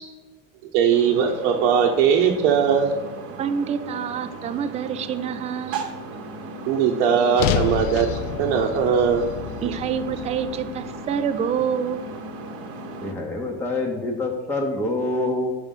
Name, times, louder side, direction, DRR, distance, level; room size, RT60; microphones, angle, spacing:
voice 1, 0.7-2.9 5.7-5.8 6.7-9.2, right 7 dB, 80° right, 0 dB, 0.9 m, -20 dB
sound 1, 0.9-13.1, right 3 dB, 40° right, 1.0 m, -37 dB
voice 2, 3.4-5.8 7.5-7.6 9.6-12.0, right 7 dB, 20° right, 10 dB, 0.3 m, -27 dB
sound 2, 7.4-11.6, left 9 dB, 60° left, 0.6 m, -29 dB
voice 3, 13.0-15.5, left 2 dB, 5° left, 0 dB, 0.7 m, -26 dB
6.3 x 5.1 x 5.5 m, 1.3 s
cardioid pair, 140°, 36 cm